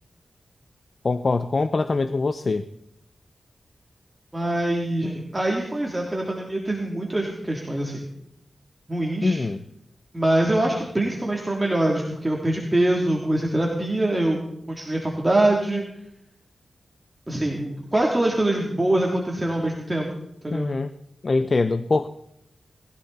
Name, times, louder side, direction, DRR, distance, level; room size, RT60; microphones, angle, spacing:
voice 1, 1.0-2.7 9.2-9.6 20.5-20.9 21.2-22.1, left 3 dB, 50° left, 11 dB, 0.7 m, -23 dB
voice 2, 4.3-8.0 8.9-9.4 10.1-14.4 14.7-15.8 17.3-20.1 20.4-20.7, right 1 dB, 20° right, -2 dB, 3.2 m, -24 dB
21.5 x 16.0 x 4.3 m, 0.77 s
cardioid pair, 60°, 0 cm